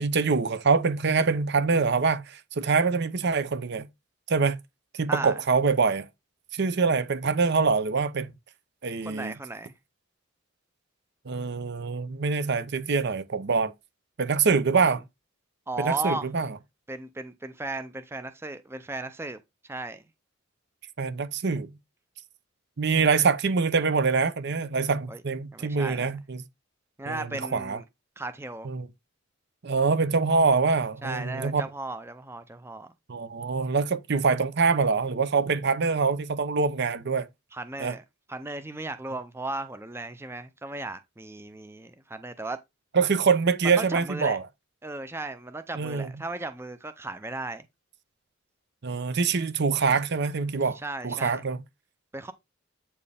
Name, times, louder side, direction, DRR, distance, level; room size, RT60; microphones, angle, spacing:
voice 1, 0.0-3.9 4.3-4.6 4.9-6.1 6.5-8.3 8.8-9.3 11.3-13.7 14.2-15.0 15.8-16.5 21.0-21.7 22.8-26.4 27.1-27.8 28.6-28.9 29.6-31.6 33.1-37.3 37.8-38.0 42.9-44.4 45.8-46.1 48.8-50.8 51.0-51.6, right 4 dB, 60° right, 0.7 m, -25 dB
voice 2, 5.1-5.4 9.0-9.7 14.7-14.9 15.7-16.3 16.9-19.4 19.7-20.0 25.1-25.2 25.5-26.1 27.0-27.8 28.2-28.7 31.0-32.9 37.5-38.0 38.3-42.6 43.8-44.4 44.8-47.7 50.8-51.4 52.1-52.3, right 2 dB, 10° right, 0.5 m, -36 dB
8.4 x 4.5 x 3.4 m
head